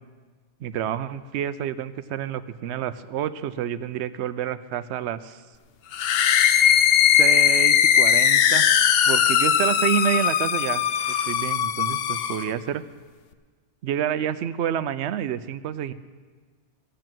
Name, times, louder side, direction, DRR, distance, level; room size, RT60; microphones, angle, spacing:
voice 1, 0.6-5.4 7.2-8.7 9.1-10.8 11.3-12.8 13.8-15.9, right 9 dB, 90° right, 14 dB, 0.9 m, -28 dB
sound 1, 5.9-12.5, left 9 dB, 70° left, 0.8 m, -19 dB
16.0 x 7.7 x 7.5 m, 1.5 s
omnidirectional pair, 1.1 m